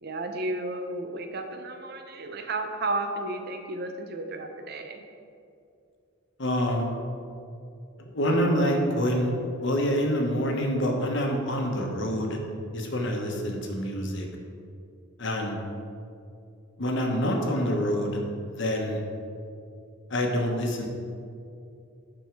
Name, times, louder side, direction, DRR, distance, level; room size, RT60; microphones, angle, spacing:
voice 1, 0.0-5.0, right 2 dB, 50° right, 5 dB, 0.7 m, -33 dB
voice 2, 6.4-6.9 8.0-9.3 9.6-12.4 12.7-14.3 15.2-15.6 16.8-18.2 18.5-19.0 20.1-20.9, equal, 60° left, 2 dB, 1.1 m, -26 dB
11.5 x 4.5 x 4.6 m, 2.5 s
head